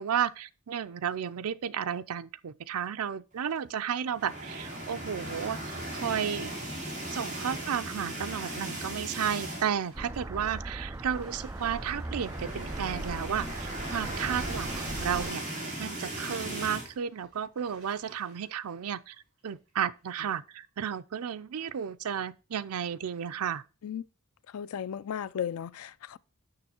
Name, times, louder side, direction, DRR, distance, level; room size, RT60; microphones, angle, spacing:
voice 1, 0.0-6.5 7.1-19.2 19.4-23.6, right 8 dB, 90° right, 0.5 m, -33 dB
sound 1, 4.1-9.9 10.3-10.4 10.7-10.8 11.9-16.9, right 1 dB, 35° right, 2.6 m, -37 dB
Bathtub (filling or washing), 6.6-19.7 20.1-20.2, right 3 dB, 60° right, 4.1 m, -55 dB
sound 2, 9.9-15.3, right 2 dB, 15° right, 0.4 m, -39 dB
voice 2, 24.5-26.2, left 8 dB, 80° left, 0.4 m, -35 dB
6.7 x 6.2 x 4.3 m
head